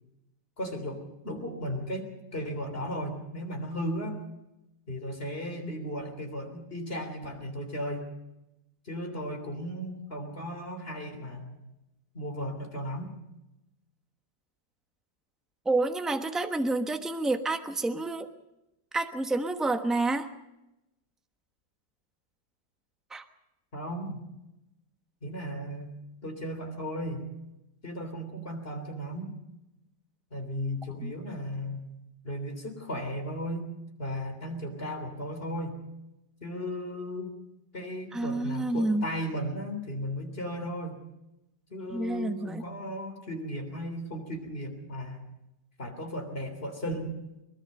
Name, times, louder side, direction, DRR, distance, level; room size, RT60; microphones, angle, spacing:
voice 1, 0.6-4.2 4.9-8.1 8.8-11.6 12.1-13.1 23.7-24.2 25.2-26.0 26.2-27.3 27.8-29.3 30.3-31.9 32.2-33.7 34.0-35.8 36.4-37.3 37.7-41.0 41.7-45.3 45.8-47.1, equal, 30° left, 5 dB, 3.5 m, -35 dB
voice 2, 15.6-18.3 18.9-20.3 23.1-23.2 31.0-31.1 38.1-39.1 41.9-42.6, right 2 dB, ahead, 6 dB, 0.8 m, -29 dB
22.5 x 21.0 x 5.4 m, 0.93 s
omnidirectional pair, 1.9 m